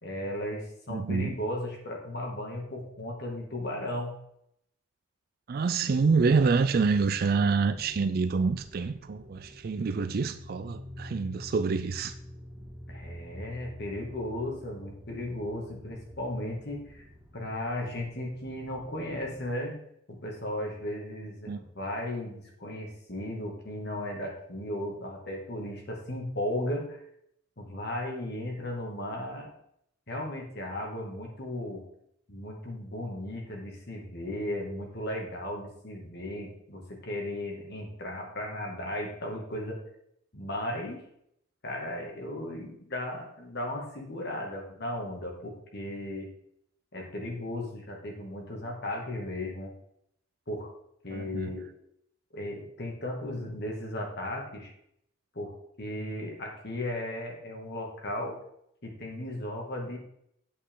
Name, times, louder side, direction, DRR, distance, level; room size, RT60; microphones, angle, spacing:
voice 1, 0.0-4.1 12.9-17.1 17.3-19.8 20.1-27.0 27.6-29.5 30.1-31.8 32.3-39.8 40.3-41.0 41.6-46.3 46.9-49.7 50.5-50.7 51.0-51.7 52.3-54.7 55.3-58.4 58.8-60.0, left 1 dB, 55° left, 2.4 m, -36 dB
voice 2, 0.9-1.4 5.5-12.1 21.5-21.6 51.1-51.5, right 4 dB, 50° right, 0.4 m, -27 dB
sound 1, 5.9-19.5, left 1 dB, 20° right, 2.4 m, -48 dB
8.5 x 8.0 x 3.8 m
head